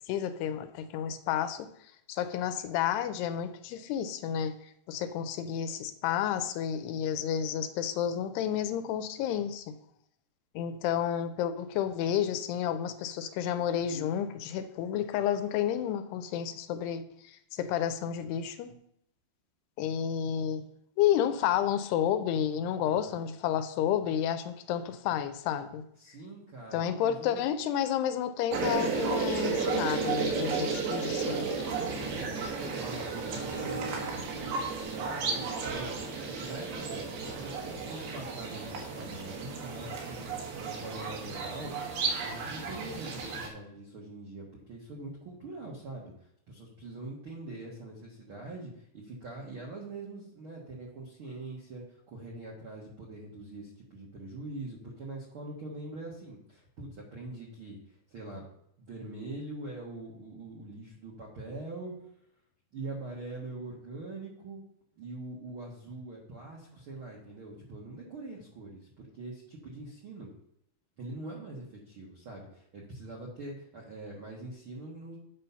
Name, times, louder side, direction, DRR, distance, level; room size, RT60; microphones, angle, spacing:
voice 1, 0.1-1.7 2.1-4.6 4.9-9.7 10.6-18.7 19.8-20.6 21.0-25.8 26.7-31.5, left 9 dB, 80° left, 10 dB, 2.6 m, -31 dB
voice 2, 22.8-23.2 26.0-27.4 32.6-34.6 34.9-36.0 36.2-41.7 42.1-57.8 58.1-58.4 58.8-62.0 62.7-64.6 65.0-70.3 71.0-75.2, right 2 dB, 65° right, -3 dB, 1.3 m, -43 dB
sound 1, 28.5-43.5, right 4 dB, 85° right, 3.7 m, -33 dB
9.1 x 5.5 x 5.6 m, 0.73 s
omnidirectional pair, 4.8 m